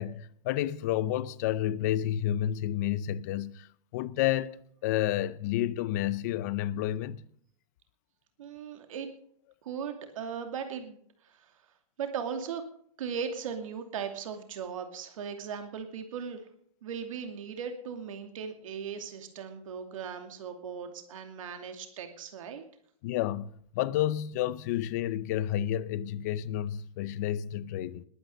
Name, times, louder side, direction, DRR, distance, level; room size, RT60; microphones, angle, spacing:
voice 1, 0.0-3.7 3.9-4.6 4.8-7.2 23.0-28.0, left 12 dB, 30° left, 0.6 m, -30 dB
voice 2, 8.4-9.1 9.6-11.0 11.2-11.5 12.0-12.6 13.0-16.4 16.8-22.6, right 7 dB, 60° right, 2.6 m, -38 dB
20.5 x 9.5 x 6.4 m
supercardioid pair, 175°, 19 cm